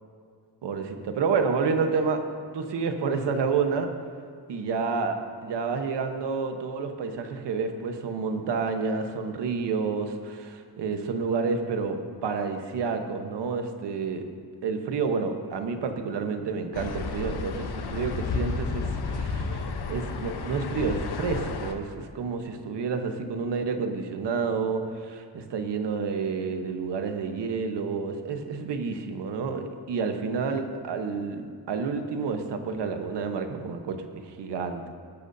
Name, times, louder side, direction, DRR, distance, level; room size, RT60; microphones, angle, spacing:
voice 1, 0.6-2.2 2.5-3.9 4.5-5.1 5.4-14.2 14.6-34.9, right 5 dB, 85° right, 6 dB, 1.2 m, -29 dB
sound 1, 16.7-21.7, left 4 dB, 70° left, 1.1 m, -32 dB
19.0 x 12.0 x 2.8 m, 2.2 s
wide cardioid pair, 140°, 41 cm